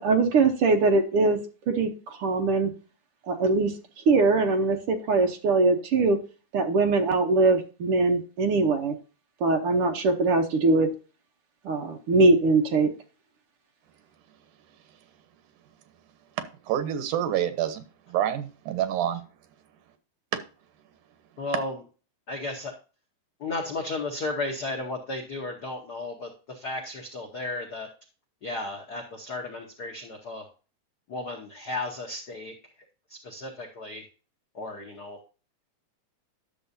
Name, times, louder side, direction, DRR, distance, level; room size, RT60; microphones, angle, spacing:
voice 1, 0.0-1.4 1.8-1.9 2.2-2.7 3.3-3.7 4.1-6.2 6.5-9.0 9.4-10.9 11.6-12.9, right 3 dB, 70° right, 4 dB, 1.4 m, -22 dB
voice 2, 16.7-17.8 18.1-19.2, right 11 dB, 85° right, 10 dB, 2.6 m, -27 dB
voice 3, 21.4-21.8 22.3-22.7 23.4-27.9 28.4-30.5 31.1-32.5 33.1-34.0 34.5-35.2, left 2 dB, 85° left, 2 dB, 0.8 m, -34 dB
11.0 x 6.8 x 2.7 m, 0.35 s
omnidirectional pair, 3.5 m